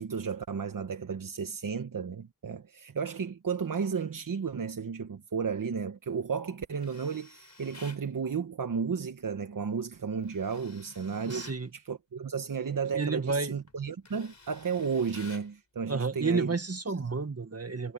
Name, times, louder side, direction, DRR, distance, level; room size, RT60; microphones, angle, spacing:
voice 1, 0.0-16.5, right 6 dB, 85° right, 1.1 m, -33 dB
Tools, 6.8-8.1 10.2-11.6 13.1-13.3 13.7-15.5, left 3 dB, 60° left, 5.1 m, -52 dB
voice 2, 11.3-11.7 12.9-13.5 15.9-17.9, right 4 dB, 50° right, 1.7 m, -31 dB
cardioid pair, 45°, 32 cm